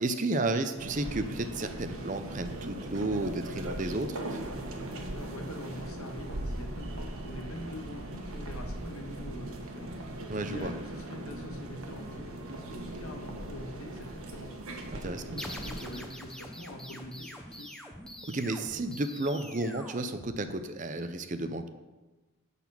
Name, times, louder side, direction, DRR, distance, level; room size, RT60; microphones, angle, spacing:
voice 1, 0.0-4.4 10.3-10.7 15.0-15.2 18.3-21.7, right 2 dB, 35° right, 9 dB, 0.6 m, -32 dB
sound 1, 0.8-16.0, right 1 dB, 75° right, 1.3 m, -39 dB
voice 2, 5.1-14.6 14.9-17.7, left 1 dB, 80° left, 2 dB, 1.6 m, -44 dB
sound 2, 15.4-20.8, equal, 5° left, 0.7 m, -44 dB
10.5 x 4.2 x 7.1 m, 1.1 s
head